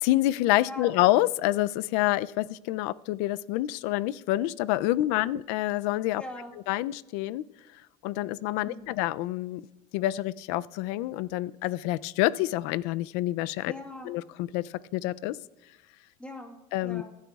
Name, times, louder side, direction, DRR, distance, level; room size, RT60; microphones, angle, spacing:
voice 1, 0.0-6.2 6.7-7.4 8.0-9.6 9.9-13.7 14.1-15.4 16.7-17.0, left 16 dB, 85° left, 17 dB, 0.4 m, -27 dB
voice 2, 6.2-6.5 8.6-8.9 13.7-14.1 16.2-16.6 16.8-17.0, left 1 dB, 5° left, 1 dB, 1.4 m, -41 dB
24.5 x 11.0 x 2.4 m, 1.0 s
cardioid pair, 175°, 20 cm